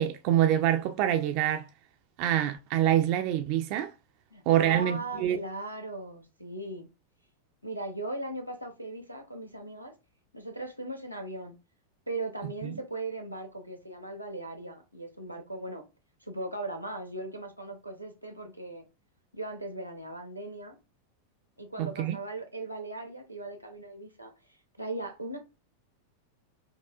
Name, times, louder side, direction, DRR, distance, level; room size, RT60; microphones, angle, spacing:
voice 1, 0.0-1.7 2.2-3.9 4.5-5.4 12.6-12.8 21.8-22.2, right 11 dB, 45° right, 0.3 m, -26 dB
voice 2, 4.3-6.9 7.6-9.9 10.3-11.6 12.1-15.8 16.2-18.8 19.3-20.8 21.6-24.3 24.8-25.4, right 2 dB, 90° right, 0.8 m, -38 dB
5.6 x 2.3 x 2.3 m
figure-of-eight pair, 90°, 0 cm